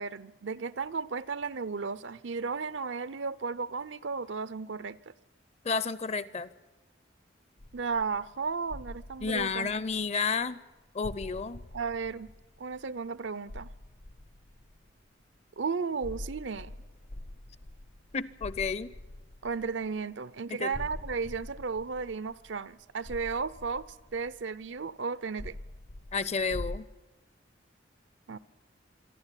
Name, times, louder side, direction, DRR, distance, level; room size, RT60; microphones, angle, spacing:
voice 1, 0.0-5.0 7.7-9.7 11.7-12.3 12.6-13.7 15.6-16.7 19.4-23.8 24.1-25.6 28.3-28.4, right 5 dB, 80° right, 0.6 m, -34 dB
voice 2, 5.6-6.5 9.2-10.6 10.9-11.6 18.1-18.9 20.6-20.7 26.1-26.9, left 5 dB, 35° left, 0.6 m, -31 dB
sound 1, 7.6-10.4 11.0-13.1 13.4-15.1 16.0-20.0 20.7-24.8 25.4-26.8, left 1 dB, 65° left, 1.0 m, -45 dB
26.0 x 11.5 x 9.9 m
head